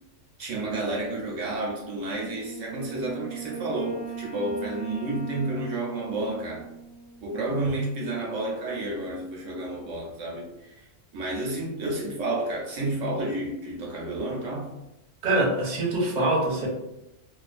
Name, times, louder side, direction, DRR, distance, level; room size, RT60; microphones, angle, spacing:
voice 1, 0.4-6.6 7.2-10.9 11.1-14.7, right 2 dB, 75° right, -2 dB, 0.9 m, -31 dB
Wind instrument woodwind instrument, 2.1-7.6, right 10 dB, 5° left, 0.7 m, -39 dB
voice 2, 15.2-16.7, right 2 dB, 45° right, -4 dB, 0.7 m, -24 dB
2.4 x 2.3 x 2.4 m, 0.88 s
omnidirectional pair, 1.4 m